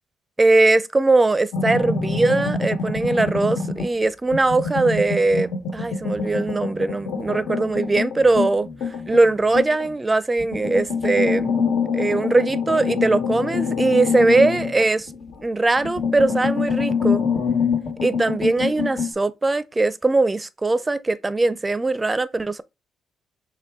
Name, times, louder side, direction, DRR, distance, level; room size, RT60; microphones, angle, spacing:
voice 1, 0.4-11.5 11.9-15.1 15.4-17.2 18.0-22.6, right 2 dB, 20° right, 0.4 m, -20 dB
sound 1, 1.5-4.0 4.3-9.9 10.4-15.4 15.8-19.1, left 5 dB, 85° left, 1.5 m, -25 dB
6.5 x 2.2 x 3.6 m
cardioid pair, 90°, 0 cm